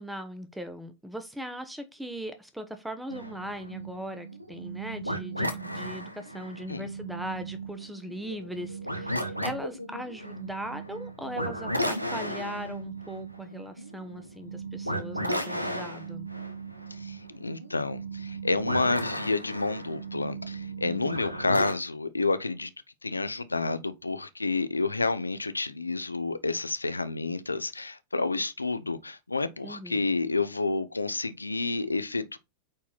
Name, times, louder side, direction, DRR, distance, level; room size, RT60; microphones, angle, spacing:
voice 1, 0.0-16.3 20.8-21.3 29.6-30.1, equal, 5° right, 1.0 m, -39 dB
sound 1, 3.1-21.7, right 1 dB, 90° right, 1.1 m, -35 dB
voice 2, 16.9-22.7 23.0-32.4, left 3 dB, 80° left, 0.6 m, -29 dB
8.7 x 4.2 x 4.0 m
figure-of-eight pair, 90°, 0 cm